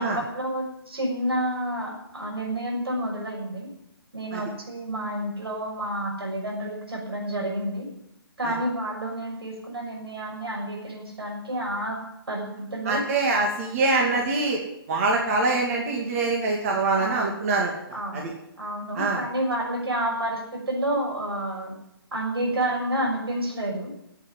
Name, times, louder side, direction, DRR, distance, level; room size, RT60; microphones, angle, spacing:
voice 1, 0.0-3.7 4.1-7.9 8.4-12.0 12.3-13.0 14.1-14.2 15.4-15.6 17.0-17.3 17.9-18.3 18.6-21.7 22.1-23.9, right 1 dB, 80° right, 2 dB, 6.4 m, -29 dB
voice 2, 12.8-14.6 14.9-17.7 18.1-18.3 18.9-19.2, right 3 dB, 35° right, 0 dB, 2.4 m, -24 dB
11.5 x 8.3 x 10.0 m, 0.82 s
hypercardioid pair, 150°, 13 cm